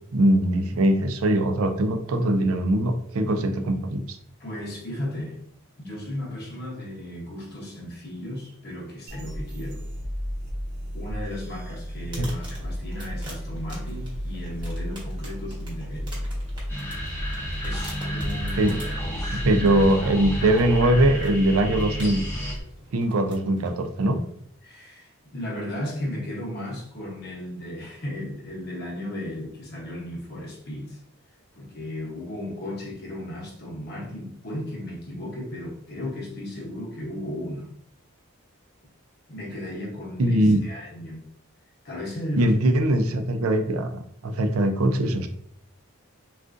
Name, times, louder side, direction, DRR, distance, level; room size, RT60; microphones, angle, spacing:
voice 1, 0.1-4.2 12.2-12.3 18.6-18.7 19.4-22.3 22.9-24.2 40.2-40.6 42.4-45.3, right 1 dB, 75° right, 0.4 m, -21 dB
voice 2, 4.4-5.4 5.8-9.9 10.9-16.3 17.6-19.5 24.6-31.0 31.5-37.7 39.3-41.2 41.8-42.5, left 1 dB, 45° left, 0.9 m, -35 dB
sound 1, 9.1-22.6, equal, 40° right, 0.8 m, -34 dB
sound 2, 11.8-24.4, right 1 dB, 20° right, 1.0 m, -47 dB
sound 3, 16.7-22.6, equal, 10° left, 0.6 m, -32 dB
3.7 x 2.3 x 2.5 m
head